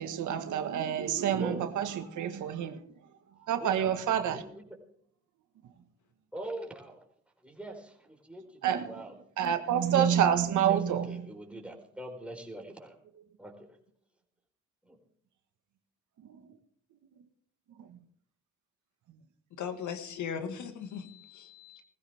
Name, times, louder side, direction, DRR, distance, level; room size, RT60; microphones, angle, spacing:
voice 1, 0.0-2.8 3.4-4.4 8.6-8.9 9.4-11.2 16.2-16.6 17.8-18.0, right 9 dB, 75° right, 7 dB, 1.6 m, -28 dB
voice 2, 1.3-1.7 3.6-3.9 4.3-4.7 6.3-7.0 7.4-9.2 9.9-10.1 10.6-13.0 13.4-13.8 14.8-15.0, right 1 dB, 5° right, 1 dB, 4.2 m, -43 dB
voice 3, 19.6-21.8, left 7 dB, 75° left, 7 dB, 2.0 m, -38 dB
18.5 x 15.5 x 3.6 m, 0.63 s
cardioid pair, 90°, 30 cm